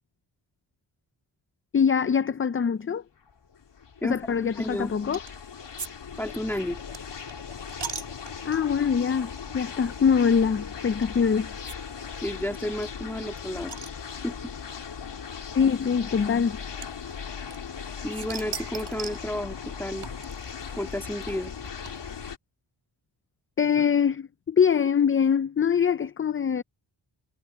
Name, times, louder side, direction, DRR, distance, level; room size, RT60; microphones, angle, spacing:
voice 1, 1.7-3.0 4.0-5.2 8.4-11.5 15.5-16.6 23.6-26.6, left 7 dB, 30° left, 0.4 m, -23 dB
sound 1, 3.3-22.4, left 6 dB, 60° left, 3.0 m, -38 dB
voice 2, 4.0-4.9 6.2-6.8 12.2-13.7 14.2-14.4 18.0-20.1 20.8-21.5, left 1 dB, 5° left, 2.0 m, -32 dB
sound 2, 5.1-5.4 5.8-8.9 9.5-9.6 9.9-10.0 11.0-11.2 11.7-11.8 12.0-12.1 12.3-12.4 12.8-14.5 15.4-15.5 16.8-17.8 18.1-19.3 20.0-22.3, right 6 dB, 60° right, 6.9 m, -40 dB
wide cardioid pair, 145°, 48 cm